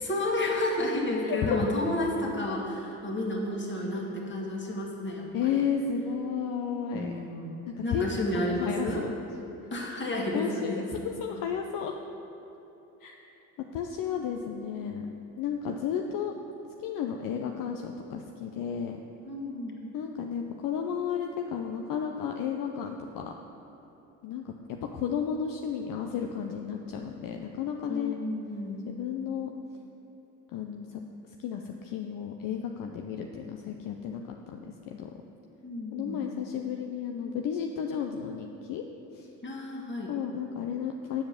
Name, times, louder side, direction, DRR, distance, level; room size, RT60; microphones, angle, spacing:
voice 1, 0.0-5.6 6.9-7.5 7.8-9.0 9.7-10.9 19.2-20.0 27.9-28.9 35.6-36.2 39.4-40.1, left 1 dB, 30° left, -2 dB, 1.9 m, -31 dB
voice 2, 1.2-1.7 5.3-7.1 7.7-9.1 10.1-11.9 13.0-13.3 13.7-15.1 15.4-16.3 16.8-19.0 19.9-23.3 24.2-24.5 24.9-28.1 28.9-29.5 30.5-31.0 31.4-35.1 35.9-38.8 39.1-39.3 40.1-41.2, left 7 dB, 65° left, 3 dB, 0.6 m, -33 dB
7.2 x 4.9 x 7.1 m, 3.0 s
supercardioid pair, 60°, 36 cm